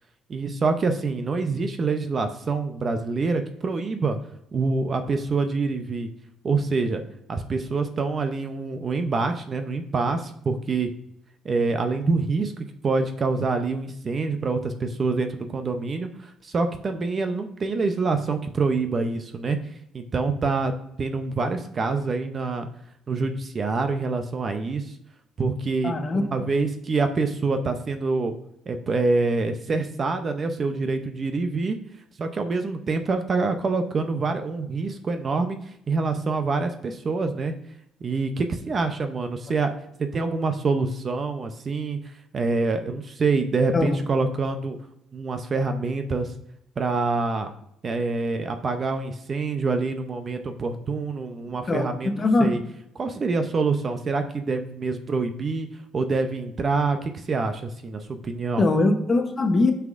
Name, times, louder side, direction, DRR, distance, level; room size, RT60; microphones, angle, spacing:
voice 1, 0.3-4.2 4.5-6.1 6.4-7.0 7.3-10.9 11.4-12.5 12.8-19.6 19.9-20.7 21.0-22.7 23.1-24.9 25.4-28.3 28.7-31.8 32.2-35.6 35.9-37.5 38.0-39.7 40.0-42.0 42.3-44.8 45.1-46.3 46.8-47.5 47.8-52.6 53.0-58.6, right 3 dB, 30° right, 7 dB, 0.6 m, -26 dB
voice 2, 25.8-26.2 43.7-44.0 51.7-52.5 58.6-59.7, left 2 dB, 25° left, 6 dB, 0.8 m, -21 dB
9.3 x 5.7 x 2.5 m, 0.77 s
cardioid pair, 155°, 0 cm